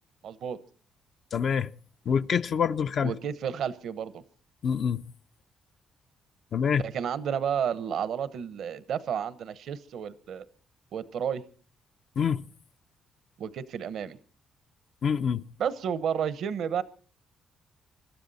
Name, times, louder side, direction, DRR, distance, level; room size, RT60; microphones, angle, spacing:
voice 1, 0.2-0.6 3.0-4.2 6.8-10.4 10.9-11.4 13.4-14.2 15.6-16.8, right 8 dB, 70° right, 1.0 m, -31 dB
voice 2, 1.3-1.7 2.1-3.2 4.6-5.0 6.5-6.9 12.2-12.4 15.0-15.4, left 7 dB, 55° left, 0.7 m, -26 dB
25.0 x 12.5 x 4.1 m
cardioid pair, 90°, 0 cm